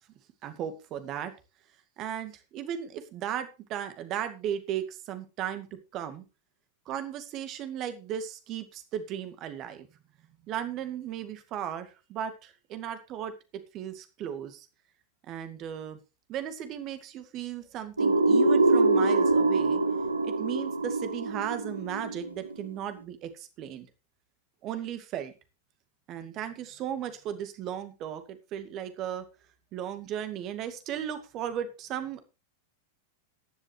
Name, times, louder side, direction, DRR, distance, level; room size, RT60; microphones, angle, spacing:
voice 1, 0.4-1.3 2.0-5.7 5.9-6.2 6.9-9.9 10.5-14.7 15.3-16.0 16.3-19.8 20.2-23.9 24.6-25.3 26.1-29.3 29.7-32.2, right 10 dB, 35° right, 9 dB, 2.3 m, -36 dB
sound 1, 18.0-22.7, right 2 dB, 80° right, 1.2 m, -24 dB
14.5 x 11.0 x 3.3 m, 0.29 s
figure-of-eight pair, 90°, 0 cm